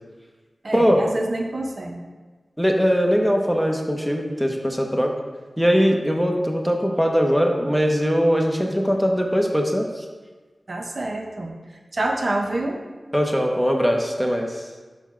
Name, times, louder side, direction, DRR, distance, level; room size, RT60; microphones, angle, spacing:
voice 1, 0.6-2.0 10.7-11.6 11.9-12.8, right 2 dB, 60° right, 2 dB, 0.8 m, -27 dB
voice 2, 2.6-5.1 5.6-10.0 13.1-14.6, equal, ahead, 2 dB, 1.0 m, -21 dB
5.8 x 4.4 x 5.9 m, 1.3 s
cardioid pair, 50°, 0 cm